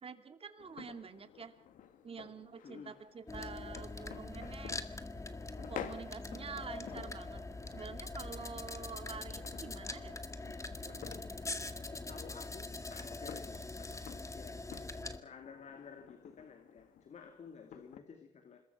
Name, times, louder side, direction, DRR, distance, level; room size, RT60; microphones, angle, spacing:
voice 1, 0.0-1.5 2.0-4.8 5.7-7.4 7.7-10.2 10.8-11.1, right 5 dB, 45° right, 2.8 m, -47 dB
sound 1, 0.6-18.0, left 8 dB, 80° left, 2.0 m, -52 dB
voice 2, 2.6-3.0 11.9-14.6 15.2-18.6, left 6 dB, 60° left, 2.7 m, -53 dB
sound 2, 3.3-15.2, left 2 dB, 20° left, 2.0 m, -43 dB
26.5 x 21.0 x 6.0 m
cardioid pair, 75°, 14 cm